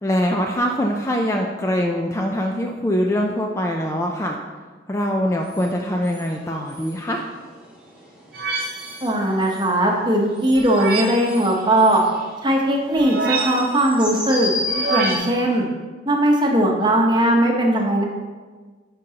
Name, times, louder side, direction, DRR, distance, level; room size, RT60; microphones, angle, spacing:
voice 1, 0.0-4.4 4.9-7.2, equal, 15° left, 1 dB, 0.4 m, -23 dB
sound 1, 5.3-15.6, left 2 dB, 5° right, 1.6 m, -34 dB
sound 2, 8.3-9.1 10.6-11.3 12.9-13.9 14.7-15.2, right 4 dB, 50° right, 0.9 m, -26 dB
voice 2, 9.0-12.0 12.4-14.5 14.9-15.7 16.1-18.0, right 1 dB, 25° right, 0 dB, 0.9 m, -19 dB
10.5 x 5.3 x 2.9 m, 1.4 s
head